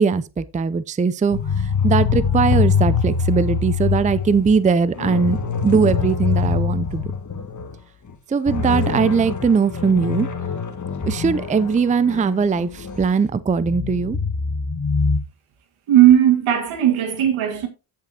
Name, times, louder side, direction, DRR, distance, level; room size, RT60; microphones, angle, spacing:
voice 1, 0.0-7.0 8.3-10.3 11.0-14.2, right 5 dB, 15° right, 0.5 m, -20 dB
sound 1, 1.3-7.7 8.1-8.2 8.5-13.1 13.6-15.2, left 5 dB, 40° left, 1.9 m, -23 dB
voice 2, 15.9-17.7, right 11 dB, 85° right, 2.0 m, -16 dB
15.0 x 6.0 x 2.8 m
cardioid pair, 70°, 47 cm